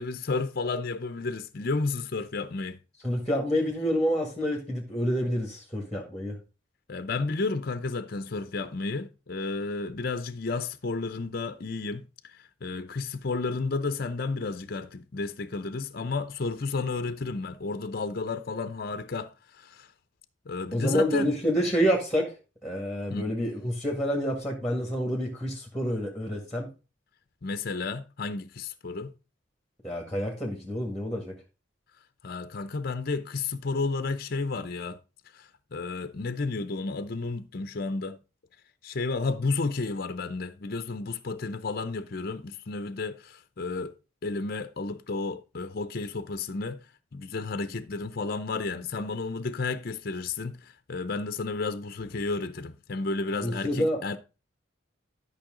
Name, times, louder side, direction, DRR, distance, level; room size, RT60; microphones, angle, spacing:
voice 1, 0.0-2.8 6.9-19.9 20.5-21.3 23.1-23.2 27.4-29.1 32.2-35.0 35.3-38.2 38.8-44.0 44.2-46.8 47.1-54.2, left 3 dB, 50° left, 0.6 m, -32 dB
voice 2, 3.0-6.4 20.7-26.7 29.8-31.4 53.4-54.0, equal, ahead, 1.8 m, -28 dB
12.0 x 5.6 x 3.8 m
head